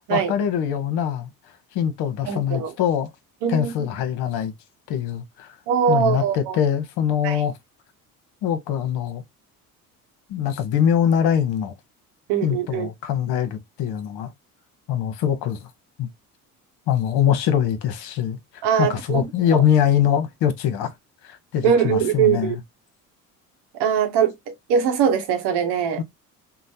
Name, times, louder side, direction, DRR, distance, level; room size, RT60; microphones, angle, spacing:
voice 1, 0.1-1.3 1.7-3.1 3.5-4.5 4.9-5.6 5.9-7.5 8.4-9.2 10.3-11.7 12.4-14.3 14.9-15.7 16.0-16.1 16.9-18.4 18.8-20.9 21.2-22.6 26.0-26.1, left 9 dB, 55° left, 0.8 m, -23 dB
voice 2, 2.3-2.7 3.4-3.7 5.7-6.6 7.2-7.4 12.3-12.9 18.6-19.3 19.5-19.6 21.6-22.6 23.8-26.0, right 8 dB, 60° right, 0.8 m, -21 dB
3.1 x 2.1 x 2.6 m
hypercardioid pair, 60°, 46 cm